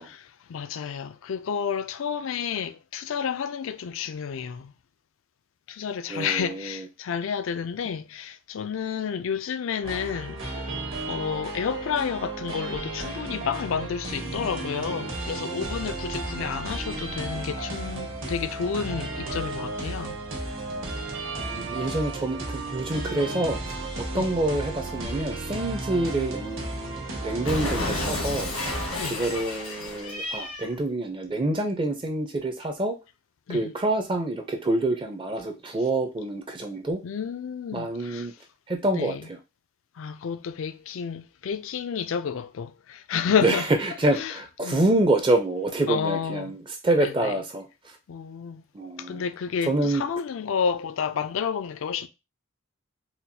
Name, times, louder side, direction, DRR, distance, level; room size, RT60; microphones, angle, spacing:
voice 1, 0.0-4.7 5.7-10.4 11.1-20.2 24.1-24.3 29.0-29.2 33.5-33.7 37.0-38.3 38.9-39.2 40.0-43.7 44.1-44.4 44.6-44.8 45.9-46.5 47.0-47.4 48.1-48.6 49.0-52.1, left 7 dB, 70° left, 0.4 m, -30 dB
voice 2, 6.1-6.8 21.4-28.5 29.0-33.0 33.5-37.0 37.7-38.3 38.7-39.4 43.4-48.0 48.7-49.3 49.6-50.0, right 2 dB, 25° right, 0.4 m, -27 dB
sound 1, 9.8-29.0, right 2 dB, 65° right, 1.1 m, -34 dB
Cat, 27.4-30.7, left 2 dB, 90° left, 1.3 m, -31 dB
4.3 x 2.3 x 2.6 m
head